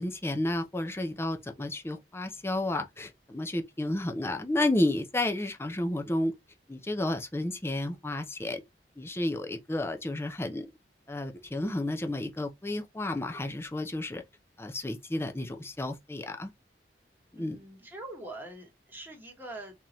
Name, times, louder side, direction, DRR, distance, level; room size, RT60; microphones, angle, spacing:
voice 1, 0.0-6.3 6.7-8.6 9.0-10.7 11.1-14.2 14.6-16.5 17.3-17.6, left 1 dB, 15° left, 0.5 m, -31 dB
voice 2, 17.3-19.8, right 2 dB, 10° right, 1.2 m, -44 dB
3.8 x 2.8 x 3.0 m
head